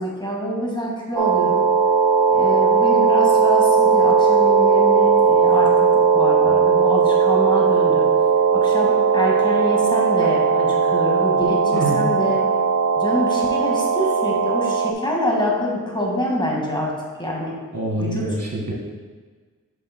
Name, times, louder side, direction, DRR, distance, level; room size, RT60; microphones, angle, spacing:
voice 1, 0.0-1.6 2.3-8.1 8.5-12.4 13.0-16.9 17.2-17.6 18.0-18.4, equal, 15° left, -2 dB, 1.8 m, -26 dB
sound 1, 1.2-14.9, right 5 dB, 75° right, 0.6 m, -17 dB
voice 2, 17.7-18.7, right 2 dB, 60° right, -2 dB, 1.8 m, -25 dB
7.1 x 7.0 x 2.2 m, 1.4 s
cardioid pair, 45°, 33 cm